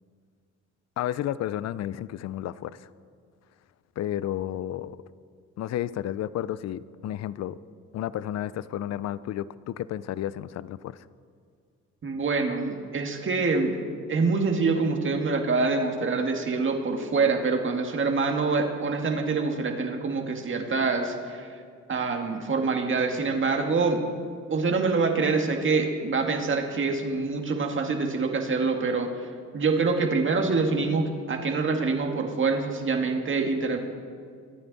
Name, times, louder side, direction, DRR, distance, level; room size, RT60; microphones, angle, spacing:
voice 1, 1.0-2.8 4.0-5.0 5.6-7.6 7.9-11.1, left 12 dB, 60° left, 18 dB, 0.5 m, -32 dB
voice 2, 12.0-13.8 14.1-21.5 21.9-24.0 24.5-29.3 29.5-33.8, right 4 dB, 40° right, 4 dB, 1.8 m, -25 dB
23.5 x 9.2 x 4.1 m, 2.1 s
cardioid pair, 90°, 30 cm